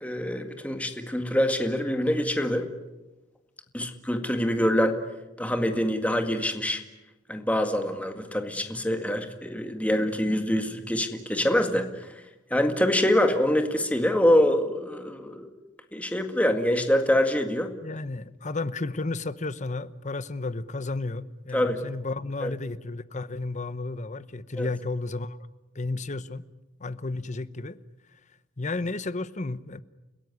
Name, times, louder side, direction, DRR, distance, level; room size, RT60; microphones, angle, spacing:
voice 1, 0.0-2.7 3.7-5.0 5.4-6.8 7.3-11.9 12.5-15.5 15.9-17.7 21.5-21.8 22.4-22.5 24.6-24.7, left 1 dB, 10° left, 1.9 m, -25 dB
voice 2, 17.8-25.4 25.7-26.4 26.8-27.8 28.6-29.8, left 3 dB, 40° left, 0.9 m, -32 dB
29.5 x 16.5 x 9.7 m
head